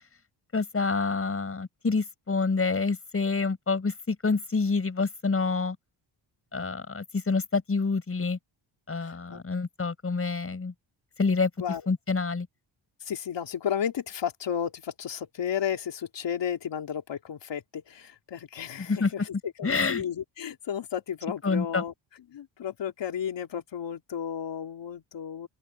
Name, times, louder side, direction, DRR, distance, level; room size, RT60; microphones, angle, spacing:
voice 1, 0.5-5.8 6.5-8.4 8.9-10.7 11.2-11.5 11.9-12.5 18.9-19.1 19.6-20.0 21.4-21.8, left 4 dB, 30° left, 5.5 m, -27 dB
voice 2, 9.0-9.4 11.6-11.8 13.0-21.9 22.3-25.5, left 8 dB, 65° left, 3.7 m, -33 dB
open air
cardioid pair, 125°, 46 cm